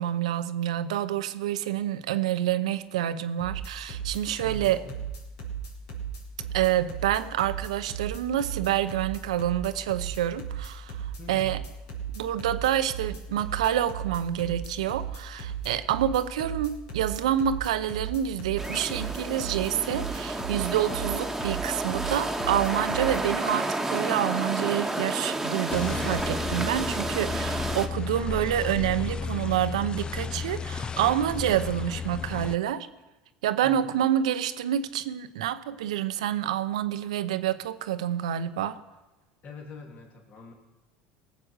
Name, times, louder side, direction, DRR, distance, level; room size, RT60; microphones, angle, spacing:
voice 1, 0.0-4.8 6.5-11.6 12.1-32.9 33.4-38.8, right 11 dB, 85° right, 12 dB, 0.7 m, -28 dB
sound 1, 3.4-23.2, right 7 dB, 75° left, 4.1 m, -36 dB
voice 2, 4.4-5.0 11.2-11.6 33.6-34.0 39.4-40.5, left 2 dB, 45° left, 1 dB, 2.8 m, -45 dB
sound 2, 18.6-27.9, right 2 dB, 5° right, 1.4 m, -31 dB
sound 3, 25.7-32.6, left 5 dB, 25° left, 0.5 m, -33 dB
18.5 x 7.7 x 6.5 m, 1.1 s
hypercardioid pair, 85°, 3 cm